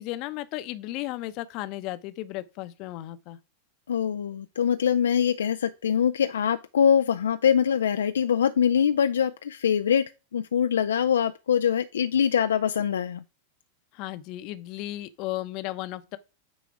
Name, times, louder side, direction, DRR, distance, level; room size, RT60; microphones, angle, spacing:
voice 1, 0.0-3.4 13.9-16.2, left 16 dB, 40° left, 0.7 m, -35 dB
voice 2, 3.9-13.2, left 8 dB, 65° left, 0.4 m, -23 dB
9.4 x 4.0 x 4.7 m
figure-of-eight pair, 90°, 0 cm